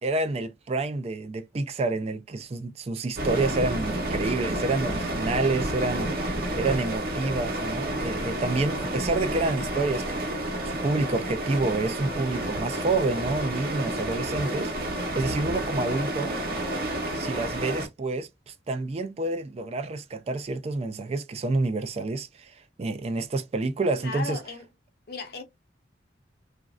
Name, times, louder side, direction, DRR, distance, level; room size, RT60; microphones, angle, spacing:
voice 1, 0.0-6.3 6.5-14.7 15.1-16.4 17.1-24.4, right 2 dB, 35° right, 0.3 m, -28 dB
sound 1, 3.2-17.9, right 1 dB, 55° right, 0.9 m, -30 dB
voice 2, 24.0-24.7 25.1-25.4, left 3 dB, 55° left, 0.8 m, -36 dB
3.1 x 2.5 x 2.3 m
head